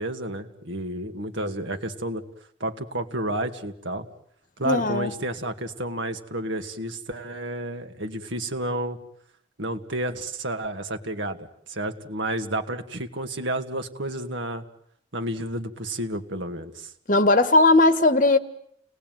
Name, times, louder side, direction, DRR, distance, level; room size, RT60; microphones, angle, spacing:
voice 1, 0.0-2.2 2.6-4.1 4.6-9.0 9.6-14.6 15.1-16.9, right 1 dB, 75° right, 6 dB, 2.4 m, -31 dB
voice 2, 4.6-5.1 17.1-18.4, left 2 dB, 45° left, 11 dB, 1.6 m, -18 dB
30.0 x 19.5 x 9.4 m, 0.70 s
head